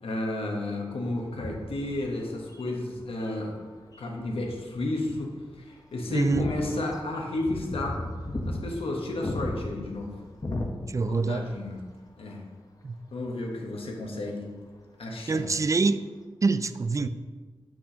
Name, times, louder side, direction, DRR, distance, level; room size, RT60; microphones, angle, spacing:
voice 1, 0.0-3.7 4.0-8.0 8.4-10.1 11.1-11.7 12.2-12.4 13.1-14.5 15.0-15.5, left 2 dB, 75° left, 0 dB, 1.1 m, -32 dB
sound 1, 1.2-3.3 3.9-4.8 5.1-5.2 5.5-5.6 6.0-11.3 11.6-11.8 13.3-13.4, left 1 dB, 40° left, 1.0 m, -35 dB
voice 2, 6.1-6.5 10.9-11.5 12.8-13.0 15.3-16.1 16.4-17.1, right 3 dB, 35° right, 12 dB, 0.3 m, -25 dB
6.2 x 6.1 x 2.8 m, 1.4 s
cardioid pair, 40°, 10 cm